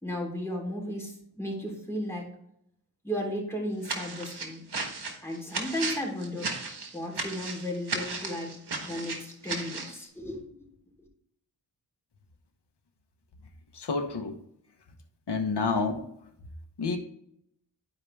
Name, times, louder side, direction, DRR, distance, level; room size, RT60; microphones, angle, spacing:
voice 1, 0.0-2.2 3.0-4.6 5.2-6.5 6.9-8.5 8.8-10.4, left 1 dB, 5° left, -2 dB, 3.4 m, -34 dB
sound 1, 3.8-10.0, right 3 dB, 65° right, 1.4 m, -35 dB
voice 2, 13.7-14.4 15.3-16.0 16.8-17.0, left 4 dB, 70° left, 5 dB, 1.1 m, -28 dB
11.0 x 4.8 x 3.3 m, 0.72 s
cardioid pair, 50°, 42 cm